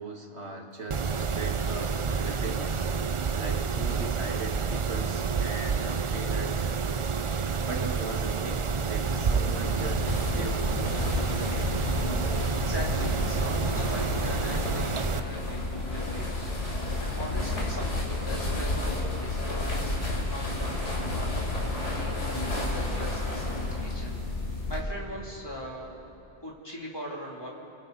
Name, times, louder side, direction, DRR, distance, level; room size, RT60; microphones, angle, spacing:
voice 1, 0.0-2.9 3.3-6.6 7.6-11.7, right 2 dB, 65° right, 1 dB, 2.3 m, -39 dB
Mechanisms, 0.9-15.2, right 5 dB, 40° right, 0.4 m, -29 dB
sound 1, 9.1-24.8, left 2 dB, 85° left, 3.8 m, -31 dB
voice 2, 12.5-24.2 24.7-27.5, equal, 20° left, -3 dB, 3.2 m, -40 dB
29.5 x 23.0 x 4.2 m, 3.0 s
omnidirectional pair, 1.2 m